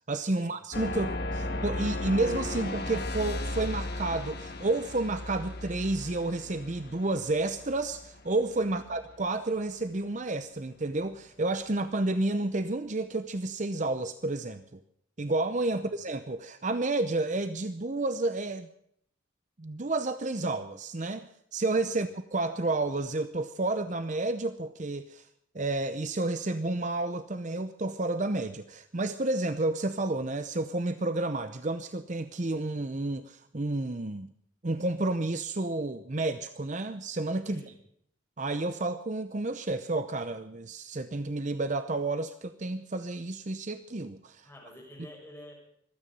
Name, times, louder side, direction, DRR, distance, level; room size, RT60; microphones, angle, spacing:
voice 1, 0.1-14.8 15.2-18.7 19.6-25.3 25.5-34.3 34.6-37.6 38.4-44.5, right 2 dB, 35° right, 11 dB, 0.7 m, -31 dB
sound 1, 0.7-9.2, left 2 dB, 50° left, 1.7 m, -36 dB
voice 2, 37.5-37.8 44.4-45.5, left 1 dB, 10° left, -1 dB, 6.5 m, -49 dB
25.0 x 9.7 x 5.5 m, 0.69 s
head